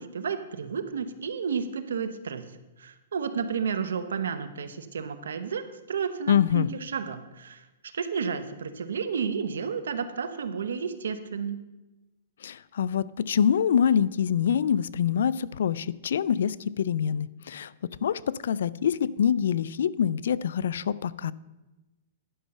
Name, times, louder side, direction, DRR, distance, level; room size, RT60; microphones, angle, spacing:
voice 1, 0.0-2.4 2.8-11.6, right 6 dB, 90° right, 11 dB, 0.9 m, -32 dB
voice 2, 6.3-6.7 12.4-21.3, left 8 dB, 75° left, 19 dB, 0.3 m, -25 dB
11.0 x 5.5 x 6.6 m, 1.1 s
hypercardioid pair, 145°, 0 cm